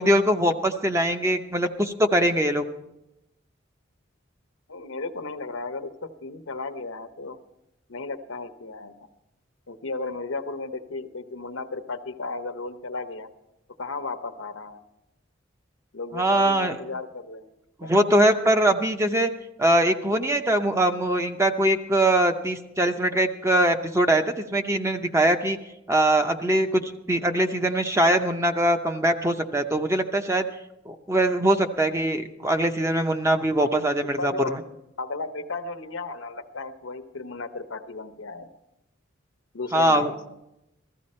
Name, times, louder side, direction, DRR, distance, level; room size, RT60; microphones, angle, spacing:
voice 1, 0.0-2.6 16.1-16.8 17.8-19.3 19.6-25.6 25.9-30.5 30.9-34.6 39.7-40.1, right 1 dB, 15° right, 6 dB, 0.6 m, -22 dB
voice 2, 4.7-7.4 7.9-8.9 9.7-13.3 13.8-14.8 15.9-17.5 17.8-17.9 34.2-34.5 35.0-38.5 39.5-40.2, left 3 dB, 85° left, 9 dB, 0.9 m, -34 dB
15.0 x 14.0 x 4.3 m, 0.89 s
head